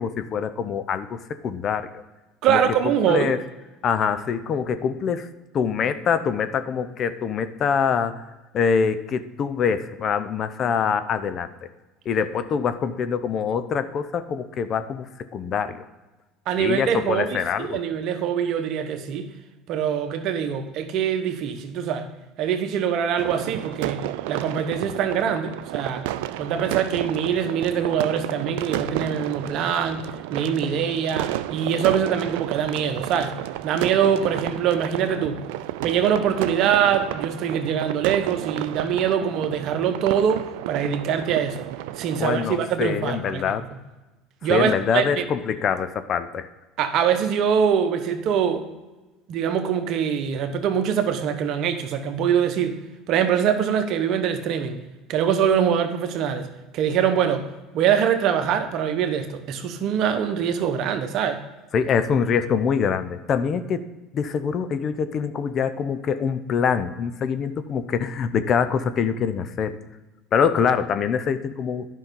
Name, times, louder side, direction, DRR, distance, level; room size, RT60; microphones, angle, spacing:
voice 1, 0.0-1.9 2.5-2.6 3.1-3.4 3.8-5.3 5.5-8.2 8.5-11.5 12.1-15.8 16.6-17.8 42.2-43.7 44.5-46.5 61.7-63.8 64.1-69.8 70.3-71.9, left 6 dB, 45° left, 11 dB, 0.7 m, -24 dB
voice 2, 2.4-3.3 16.5-19.3 19.7-22.1 22.4-26.1 26.4-30.1 30.3-33.4 33.6-35.4 35.8-41.7 42.0-43.6 44.4-45.2 46.8-48.7 49.3-52.8 53.1-54.8 55.1-56.5 56.7-57.5 57.7-61.4, right 8 dB, 60° right, 8 dB, 1.0 m, -23 dB
sound 1, 23.2-42.5, right 14 dB, 75° right, 0.4 m, -32 dB
10.5 x 5.6 x 5.3 m, 1.1 s
hypercardioid pair, 80°, 0 cm